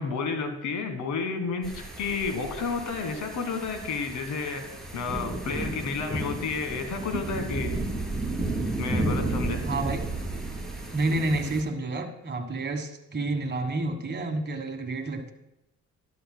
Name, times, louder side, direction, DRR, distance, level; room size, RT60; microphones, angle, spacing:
voice 1, 0.0-4.7 4.9-7.8 8.8-9.6, left 4 dB, 80° left, 6 dB, 1.6 m, -31 dB
Storm Ko Samet, 1.6-11.6, right 2 dB, ahead, 2.9 m, -32 dB
voice 2, 9.6-10.0 10.9-15.3, right 2 dB, 35° right, 5 dB, 1.5 m, -29 dB
12.5 x 12.0 x 2.2 m, 0.88 s
cardioid pair, 90°, 30 cm